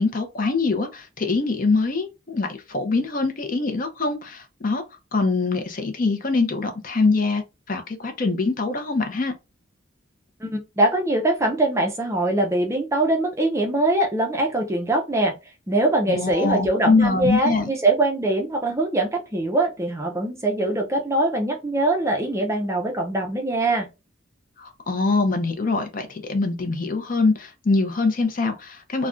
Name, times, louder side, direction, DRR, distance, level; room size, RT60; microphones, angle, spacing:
voice 1, 0.0-4.8 5.1-7.4 7.7-9.3 16.1-17.7 24.6-29.1, left 3 dB, 40° left, 0.5 m, -23 dB
voice 2, 10.4-15.4 15.7-23.9, right 2 dB, 15° right, 0.4 m, -22 dB
2.4 x 2.1 x 3.6 m
head